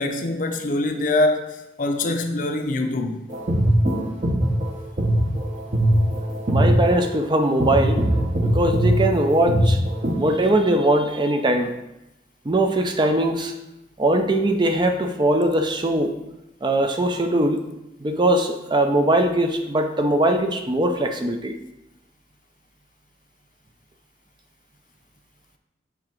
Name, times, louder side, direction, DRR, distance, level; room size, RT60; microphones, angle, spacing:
voice 1, 0.0-3.2 10.0-10.1, left 2 dB, 50° left, 0.6 m, -24 dB
sound 1, 3.3-10.3, right 1 dB, 40° right, 0.9 m, -21 dB
voice 2, 6.5-8.0 8.4-9.8 10.2-11.7 12.5-13.5 14.0-16.2 16.6-17.6 18.0-21.5, right 1 dB, 25° right, 0.4 m, -21 dB
6.9 x 3.6 x 4.5 m
head